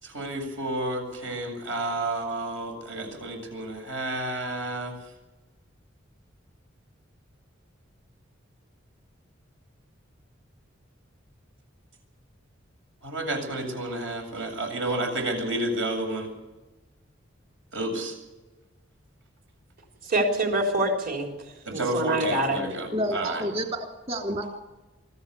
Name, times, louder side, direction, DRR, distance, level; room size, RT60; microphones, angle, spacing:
voice 1, 0.0-4.9 13.0-16.3 17.7-18.1 21.7-23.4, right 1 dB, 75° right, 3 dB, 7.9 m, -30 dB
voice 2, 20.1-21.3 21.7-22.6, right 1 dB, 50° right, 2 dB, 3.9 m, -25 dB
voice 3, 22.9-24.6, equal, 30° right, 2 dB, 3.3 m, -30 dB
24.5 x 14.5 x 8.5 m, 1.1 s
head